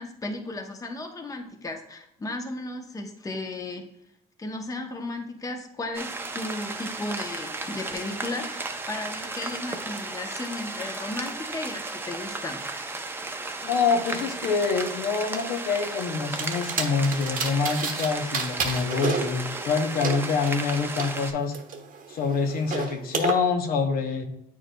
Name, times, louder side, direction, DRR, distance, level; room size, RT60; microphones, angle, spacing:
voice 1, 0.0-3.9 4.4-12.7, left 2 dB, 20° left, 4 dB, 0.8 m, -35 dB
sound 1, 5.9-21.3, right 3 dB, 15° right, 0.6 m, -34 dB
voice 2, 13.6-21.5 22.1-24.3, left 5 dB, 60° left, 5 dB, 0.8 m, -26 dB
sound 2, 16.4-18.1 18.3-21.1 21.5-23.3, right 5 dB, 55° right, 1.0 m, -31 dB
9.0 x 4.7 x 2.2 m, 0.78 s
cardioid pair, 110°, 17 cm